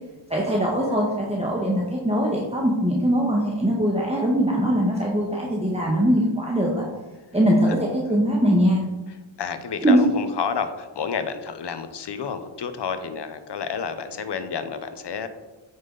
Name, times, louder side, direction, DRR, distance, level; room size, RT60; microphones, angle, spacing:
voice 1, 0.3-6.9 7.3-8.9 9.8-10.0, equal, 10° right, -3 dB, 1.4 m, -21 dB
voice 2, 9.4-15.3, left 6 dB, 55° left, 10 dB, 1.0 m, -30 dB
8.7 x 5.7 x 4.0 m, 1.2 s
cardioid pair, 65°, 49 cm